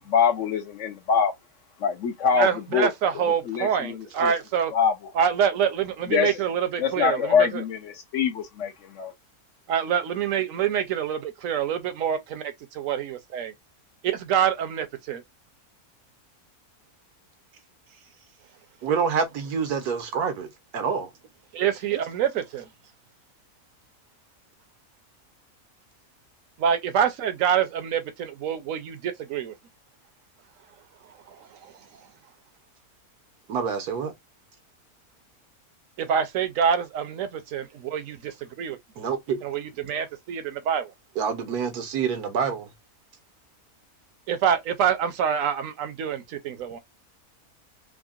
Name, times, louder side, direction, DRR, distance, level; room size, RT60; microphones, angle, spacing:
voice 1, 0.0-1.3 1.8-2.9 3.5-4.0 4.2-4.3 4.7-4.9 6.1-6.3 6.8-9.1, left 7 dB, 65° left, 0.8 m, -24 dB
voice 2, 2.3-4.7 5.1-7.6 9.7-13.5 14.0-15.2 21.5-22.7 26.6-29.5 31.1-32.1 36.0-38.8 39.4-40.9 44.3-46.8, right 8 dB, 65° right, 1.0 m, -26 dB
voice 3, 18.8-20.5 20.7-21.1 33.5-34.1 39.0-39.4 41.2-42.7, right 6 dB, 85° right, 1.3 m, -27 dB
3.6 x 2.1 x 2.4 m
omnidirectional pair, 1.6 m